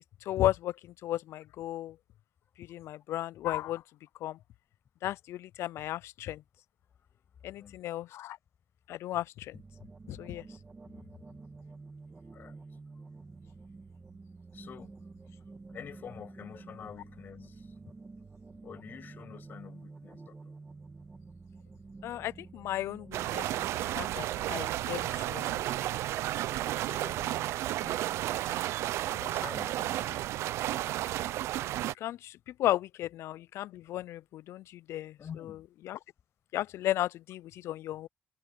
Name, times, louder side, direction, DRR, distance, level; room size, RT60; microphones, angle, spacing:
voice 1, 0.3-2.0 2.6-3.8 4.2-4.4 5.0-6.4 7.4-8.4 8.9-9.6 10.1-10.4 22.0-25.9 26.9-27.1 27.8-28.0 31.8-35.6 35.8-36.0 36.5-38.1, left 14 dB, 75° left, 0.4 m, -35 dB
sound 1, 9.5-24.2, right 3 dB, 20° right, 2.1 m, -50 dB
voice 2, 14.5-15.0 15.7-17.7 18.6-20.5 27.1-27.6 27.9-28.2 29.1-30.2 35.2-35.6, left 8 dB, 45° left, 7.5 m, -47 dB
sound 2, 23.1-31.9, right 14 dB, 90° right, 0.5 m, -32 dB
cardioid pair, 140°, 5 cm